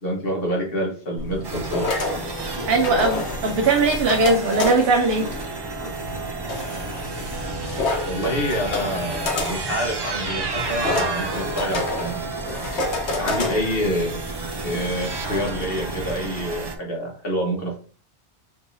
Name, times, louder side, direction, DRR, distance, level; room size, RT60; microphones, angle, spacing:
voice 1, 0.0-1.9 8.0-12.2 13.2-14.2 14.6-17.8, equal, 60° left, -2 dB, 1.5 m, -27 dB
sound 1, 1.2-16.1, left 3 dB, 80° left, 1.2 m, -30 dB
sound 2, 1.4-16.8, right 3 dB, 35° right, 0.4 m, -31 dB
voice 2, 2.6-5.3, right 3 dB, 65° right, 2 dB, 0.8 m, -19 dB
5.2 x 3.1 x 2.6 m, 0.41 s
omnidirectional pair, 1.1 m